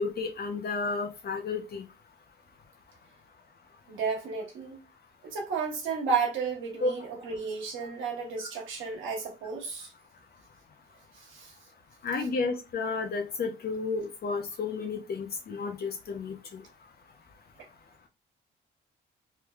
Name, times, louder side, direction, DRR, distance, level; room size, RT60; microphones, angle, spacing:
voice 1, 0.0-1.8 6.8-6.9 12.0-16.6, left 4 dB, 50° left, 0.7 m, -32 dB
voice 2, 3.9-4.8 5.3-9.9 11.2-11.5, right 5 dB, 80° right, 1.1 m, -32 dB
3.7 x 2.9 x 2.3 m
cardioid pair, 90°, 20 cm